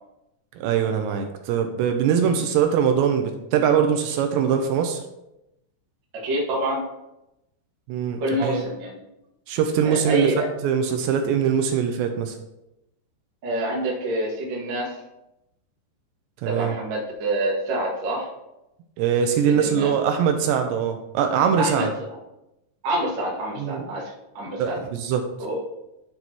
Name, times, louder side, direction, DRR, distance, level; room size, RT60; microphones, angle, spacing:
voice 1, 0.6-5.0 7.9-8.6 9.5-10.3 10.6-12.4 16.4-16.8 19.0-21.9 23.6-23.9 24.6-25.3, right 7 dB, 80° right, 5 dB, 2.7 m, -22 dB
voice 2, 6.1-6.8 8.2-9.0 9.8-10.4 13.4-14.9 16.4-18.3 19.6-19.9 21.6-21.9 22.8-24.8 25.4-25.6, right 1 dB, 65° right, -3 dB, 1.1 m, -27 dB
11.0 x 4.0 x 4.5 m, 0.90 s
omnidirectional pair, 5.4 m